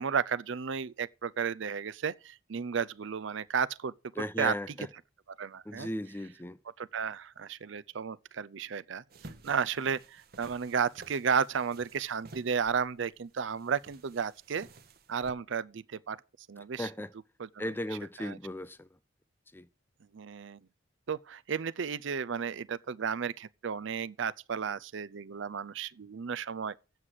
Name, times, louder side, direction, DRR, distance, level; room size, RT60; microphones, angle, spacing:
voice 1, 0.0-3.9 4.4-4.5 5.4-5.9 6.8-9.0 9.4-14.7 15.1-16.2 16.5-16.9 17.4-17.7 18.2-18.4 20.1-20.6 21.1-26.7, right 6 dB, 65° right, 0.5 m, -33 dB
voice 2, 4.2-4.9 5.6-6.6 16.6-17.1 17.6-18.9 19.5-19.7, left 1 dB, 10° left, 0.5 m, -36 dB
sound 1, 9.1-15.3, right 2 dB, 50° right, 1.0 m, -53 dB
8.0 x 7.5 x 7.9 m
head